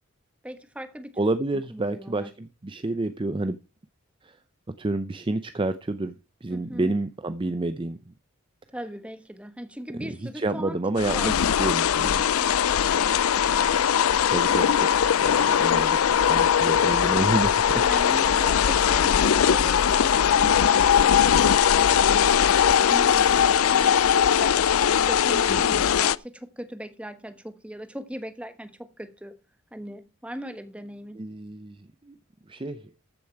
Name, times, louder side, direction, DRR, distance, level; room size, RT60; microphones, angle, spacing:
voice 1, 0.4-1.2 1.7-2.3 6.5-6.9 8.7-11.3 12.4-13.2 17.8-24.5 24.9-29.3 29.7-31.2, equal, 5° right, 1.3 m, -39 dB
voice 2, 1.2-3.6 4.8-6.1 6.4-8.0 10.0-10.1 10.4-12.2 14.3-14.7 15.2-17.8 18.1-18.4 25.5-25.6 31.2-31.8 32.1-32.2 32.5-32.8, right 2 dB, 25° right, 0.5 m, -29 dB
sound 1, 11.0-26.2, left 8 dB, 80° left, 0.5 m, -20 dB
14.0 x 6.9 x 4.6 m
head